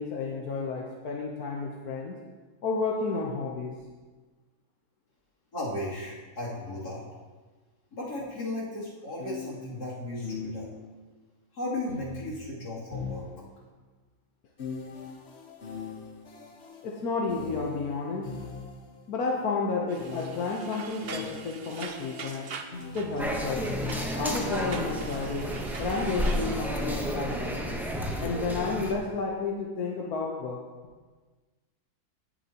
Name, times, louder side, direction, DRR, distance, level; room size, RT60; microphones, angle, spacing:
voice 1, 0.0-2.1 2.6-3.7 16.8-18.3 19.1-22.5 22.9-23.7 24.2-25.5 25.8-27.6 28.2-30.6, left 4 dB, 70° left, -1 dB, 1.4 m, -31 dB
voice 2, 5.5-7.0 7.9-10.7 11.5-13.2, left 1 dB, 90° left, -7 dB, 3.5 m, -35 dB
sound 1, 8.2-8.3 9.2-11.0 11.9-13.8 14.6-19.1 20.0-24.5, left 5 dB, 45° left, 1.2 m, -41 dB
sound 2, 19.9-26.6, right 5 dB, 50° right, 0.8 m, -42 dB
sound 3, 23.2-28.9, equal, ahead, 0.8 m, -31 dB
17.5 x 7.3 x 2.9 m, 1.3 s
omnidirectional pair, 1.7 m